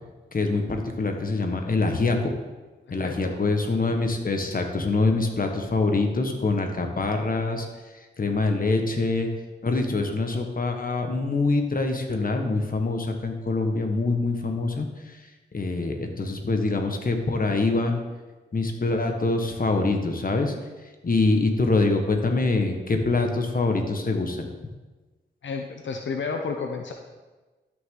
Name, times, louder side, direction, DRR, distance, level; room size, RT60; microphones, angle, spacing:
voice 1, 0.3-2.3 2.9-7.7 7.9-9.3 9.6-18.0 18.5-20.5 20.8-24.5, left 3 dB, 50° left, 4 dB, 1.4 m, -25 dB
voice 2, 3.0-3.4 25.4-26.9, left 5 dB, 85° left, 3 dB, 0.7 m, -31 dB
12.5 x 6.5 x 3.8 m, 1.2 s
cardioid pair, 60°, 19 cm